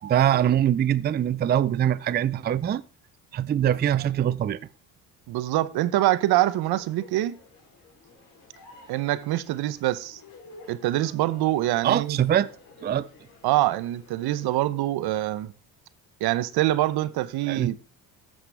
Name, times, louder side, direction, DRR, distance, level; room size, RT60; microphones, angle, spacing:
voice 1, 0.0-2.8 3.3-4.6 11.8-12.5 12.8-13.1 17.5-17.7, right 10 dB, 25° right, 0.4 m, -23 dB
voice 2, 5.3-7.4 8.9-10.2 10.7-12.2 13.4-15.5 16.2-17.7, right 15 dB, 70° right, 0.7 m, -25 dB
sound 1, 6.0-14.6, left 3 dB, 60° left, 3.5 m, -52 dB
12.5 x 7.5 x 3.4 m
cardioid pair, 95°, 39 cm